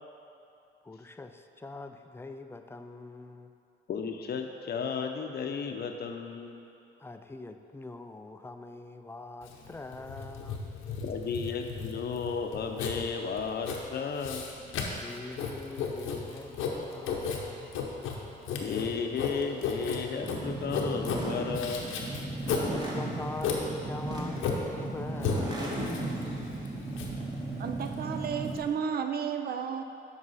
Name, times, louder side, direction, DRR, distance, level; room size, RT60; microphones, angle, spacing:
voice 1, 0.8-3.5 7.0-10.7 14.9-17.7 22.6-26.1, left 2 dB, 10° left, 7 dB, 0.4 m, -43 dB
voice 2, 3.9-6.6 11.0-14.5 18.6-21.9 22.5-22.7, left 5 dB, 55° left, 4 dB, 0.7 m, -34 dB
Writing, 9.4-28.6, left 5 dB, 90° left, 0.9 m, -35 dB
sound 1, 20.2-28.7, right 2 dB, 20° right, 1.4 m, -36 dB
voice 3, 27.6-29.8, right 7 dB, 50° right, 7 dB, 0.5 m, -32 dB
7.8 x 5.4 x 4.1 m, 2.7 s
cardioid pair, 90°, 20 cm